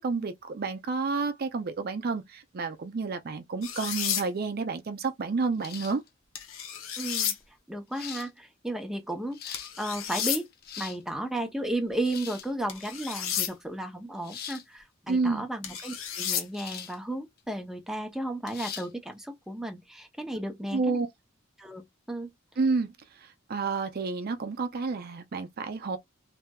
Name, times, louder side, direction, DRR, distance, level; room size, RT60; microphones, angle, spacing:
voice 1, 0.0-6.0 15.1-15.5 20.7-21.1 22.6-26.0, right 4 dB, 50° right, 0.5 m, -30 dB
sound 1, 3.6-4.3 6.4-7.4 9.5-10.4 12.7-13.5 15.6-16.4, left 9 dB, 85° left, 0.8 m, -32 dB
sound 2, 5.6-6.1 7.1-7.2 7.9-8.3 9.1-9.7 10.5-11.0 12.0-12.5 14.2-14.6 16.5-17.0 17.4-17.5 18.5-18.9, left 8 dB, 50° left, 0.8 m, -41 dB
voice 2, 7.0-7.4 7.7-10.5 10.8-21.0 21.6-22.3, right 1 dB, ahead, 0.6 m, -34 dB
3.4 x 2.7 x 2.3 m
head